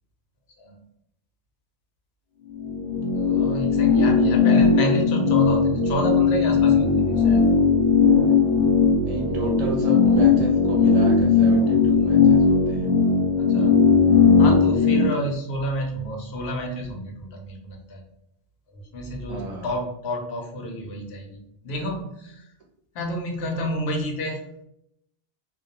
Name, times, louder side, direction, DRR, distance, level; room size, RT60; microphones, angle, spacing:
sound 1, 2.5-15.1, left 5 dB, 30° left, 0.6 m, -18 dB
voice 1, 3.1-7.5 9.4-9.5 13.4-13.8 14.4-18.0 18.7-22.4 22.9-24.4, equal, 80° left, 1 dB, 0.8 m, -30 dB
voice 2, 9.1-12.9 19.3-19.8, right 3 dB, 45° right, -2 dB, 0.6 m, -31 dB
2.2 x 2.1 x 2.7 m, 0.78 s
omnidirectional pair, 1.1 m